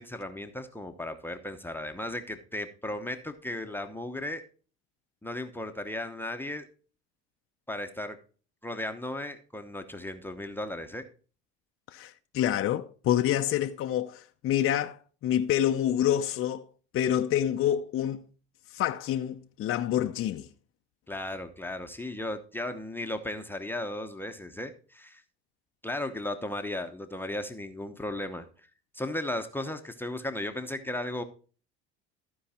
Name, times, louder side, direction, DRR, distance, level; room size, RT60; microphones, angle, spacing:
voice 1, 0.0-4.4 5.2-6.6 7.7-8.2 8.6-11.0 21.1-25.2 25.8-28.5 28.9-31.2, left 1 dB, 5° left, 0.9 m, -35 dB
voice 2, 11.9-16.7 16.9-18.2 18.7-20.5, left 11 dB, 45° left, 0.7 m, -27 dB
14.0 x 4.7 x 4.3 m
supercardioid pair, 100°, 31 cm